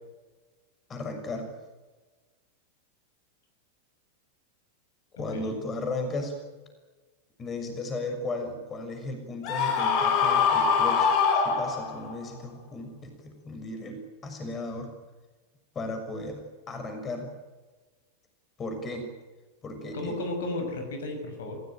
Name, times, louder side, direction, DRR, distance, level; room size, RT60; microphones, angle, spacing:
voice 1, 0.9-1.5 5.2-6.4 7.4-14.9 15.7-17.3 18.6-19.1 19.6-20.2, left 2 dB, 25° left, 6 dB, 6.5 m, -35 dB
voice 2, 5.2-5.6 19.9-21.6, left 2 dB, 60° left, 6 dB, 6.2 m, -34 dB
Screaming, 9.4-12.1, left 6 dB, 40° left, 4.3 m, -23 dB
28.5 x 17.0 x 9.1 m, 1.3 s
figure-of-eight pair, 90°, 0 cm